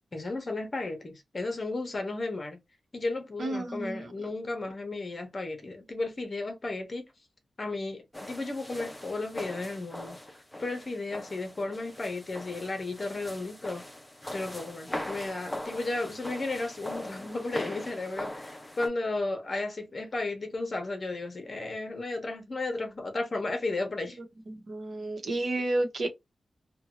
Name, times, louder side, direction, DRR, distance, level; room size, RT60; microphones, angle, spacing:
voice 1, 0.1-2.6 2.9-7.0 7.6-13.8 14.3-24.2, left 2 dB, 35° left, 0.9 m, -34 dB
voice 2, 3.4-4.0 24.5-26.1, right 2 dB, 55° right, 0.9 m, -31 dB
sound 1, 8.1-18.9, left 1 dB, 10° left, 0.6 m, -41 dB
2.7 x 2.2 x 2.8 m
wide cardioid pair, 140°, 0 cm